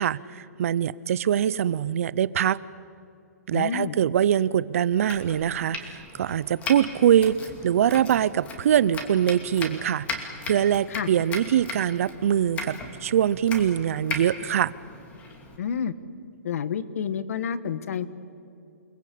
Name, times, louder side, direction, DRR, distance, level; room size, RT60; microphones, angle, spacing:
voice 1, 0.0-2.6 3.5-14.7, right 10 dB, 55° right, 19 dB, 0.7 m, -23 dB
voice 2, 3.5-3.9 10.9-11.1 15.6-15.9 16.4-18.1, left 7 dB, 60° left, 14 dB, 1.4 m, -29 dB
Domestic sounds home sounds, 4.9-15.6, left 3 dB, 15° left, 2.6 m, -38 dB
29.0 x 20.5 x 8.5 m, 2.6 s
hypercardioid pair, 160°, 9 cm